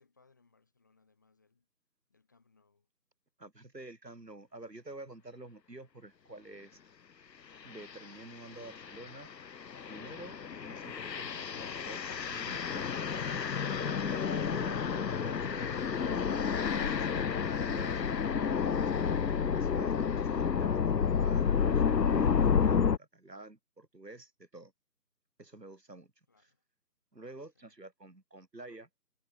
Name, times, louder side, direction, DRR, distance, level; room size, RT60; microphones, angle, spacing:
voice 1, 0.0-1.7 2.1-2.9 26.3-26.6 27.5-27.8, left 4 dB, 10° left, 2.2 m, -69 dB
voice 2, 3.4-6.8 7.6-9.3 9.9-12.0 12.3-18.0 18.5-24.7 25.4-26.1 27.1-28.9, right 2 dB, 80° right, 5.2 m, -49 dB
sound 1, 7.7-8.0 8.5-23.0, left 6 dB, 85° left, 0.8 m, -30 dB
figure-of-eight pair, 170°, 49 cm